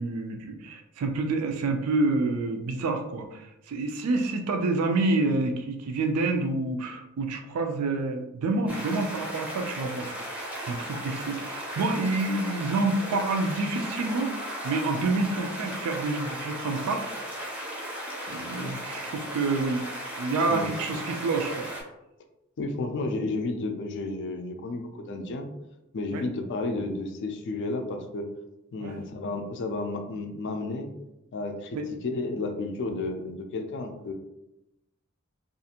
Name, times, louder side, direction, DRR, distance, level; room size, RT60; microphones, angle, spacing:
voice 1, 0.0-10.1 10.6-14.3 14.6-17.0 18.3-19.8 20.2-21.7 26.1-26.2 28.8-29.0 31.7-31.9, right 3 dB, 85° right, 4 dB, 0.4 m, -28 dB
sound 1, 8.7-21.8, equal, 5° right, 0.5 m, -36 dB
voice 2, 22.6-25.5 25.9-28.3 28.7-30.9 31.3-34.1, left 2 dB, 55° left, 5 dB, 0.4 m, -32 dB
2.4 x 2.4 x 2.8 m, 0.90 s
head